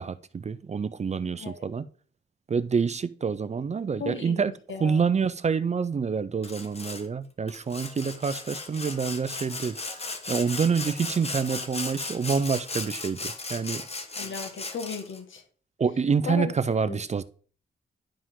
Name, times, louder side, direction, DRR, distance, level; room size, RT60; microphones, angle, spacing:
voice 1, 0.0-1.9 2.5-4.5 4.8-13.8 15.8-17.2, right 5 dB, 35° right, 0.5 m, -27 dB
voice 2, 4.0-4.4 4.7-5.1 14.2-15.4 16.2-16.5 16.9-17.0, left 5 dB, 75° left, 1.6 m, -35 dB
Sawing, 6.4-7.1 7.5-15.2, left 3 dB, 30° left, 1.2 m, -36 dB
11.0 x 5.0 x 3.7 m
wide cardioid pair, 110°, 20 cm